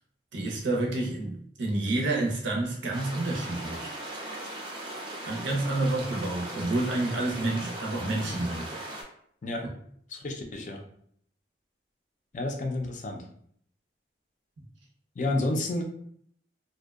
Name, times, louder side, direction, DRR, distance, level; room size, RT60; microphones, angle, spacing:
voice 1, 0.3-4.0 5.2-8.8, right 2 dB, 85° right, 0.6 m, -29 dB
sound 1, 2.9-9.0, right 1 dB, 25° right, 0.4 m, -38 dB
voice 2, 10.1-10.8 12.3-13.2 15.2-15.8, left 2 dB, 40° left, 0.3 m, -30 dB
2.5 x 2.1 x 2.3 m
head